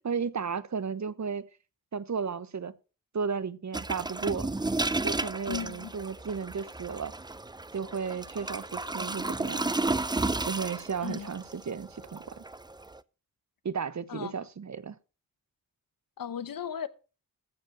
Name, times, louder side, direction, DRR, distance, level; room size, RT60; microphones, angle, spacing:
voice 1, 0.0-1.5 1.9-2.7 3.1-4.5 5.0-7.1 7.7-9.6 10.4-12.4 13.6-15.0, right 6 dB, 55° right, 0.9 m, -34 dB
sound 1, 3.7-13.0, right 2 dB, 15° right, 0.5 m, -33 dB
voice 2, 5.5-5.9 11.0-11.3 14.1-14.3 16.2-16.9, left 8 dB, 80° left, 0.9 m, -36 dB
14.5 x 5.3 x 6.0 m
cardioid pair, 50°, 34 cm